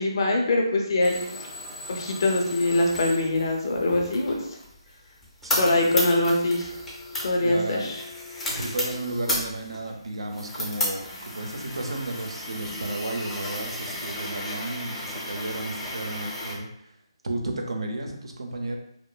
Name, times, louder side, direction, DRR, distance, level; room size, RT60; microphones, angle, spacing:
voice 1, 0.0-1.4 1.9-4.4 5.6-6.7 7.2-8.0, left 2 dB, 55° left, 1 dB, 0.5 m, -23 dB
sound 1, 1.0-16.5, left 1 dB, 5° left, 0.5 m, -34 dB
voice 2, 5.4-6.0 7.4-8.0 8.5-17.0 17.2-18.8, right 2 dB, 75° right, 3 dB, 0.5 m, -33 dB
2.9 x 2.0 x 2.2 m, 0.73 s
figure-of-eight pair, 150°, 3 cm